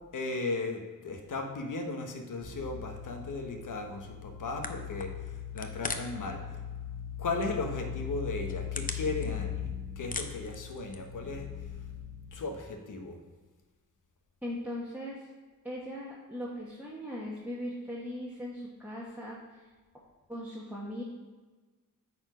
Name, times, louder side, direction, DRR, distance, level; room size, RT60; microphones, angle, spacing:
voice 1, 0.1-6.4 7.2-11.5 12.3-13.2, left 3 dB, 65° left, 4 dB, 1.2 m, -36 dB
sound 1, 2.4-12.3, left 9 dB, 50° left, 1.8 m, -40 dB
sound 2, 4.3-4.4 4.6-6.3 6.6-7.2 7.6-7.7 8.2-9.7 9.9-11.2, left 4 dB, 25° left, 0.6 m, -39 dB
voice 2, 14.4-15.3 15.6-19.7 20.3-21.0, equal, 5° right, -6 dB, 1.3 m, -39 dB
8.7 x 4.4 x 5.0 m, 1.3 s
cardioid pair, 95°, 34 cm